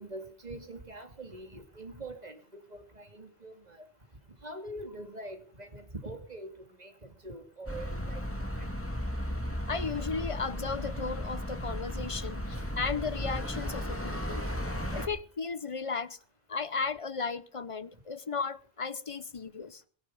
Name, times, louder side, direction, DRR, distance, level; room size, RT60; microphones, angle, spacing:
voice 1, 0.0-2.4 2.7-3.9 4.4-8.2 8.5-8.7, right 1 dB, 40° right, 2.4 m, -44 dB
sound 1, 7.7-15.1, equal, 10° left, 2.4 m, -35 dB
voice 2, 9.7-14.5 14.9-16.2 16.5-19.8, left 5 dB, 35° left, 0.8 m, -35 dB
21.5 x 10.5 x 5.5 m
omnidirectional pair, 1.1 m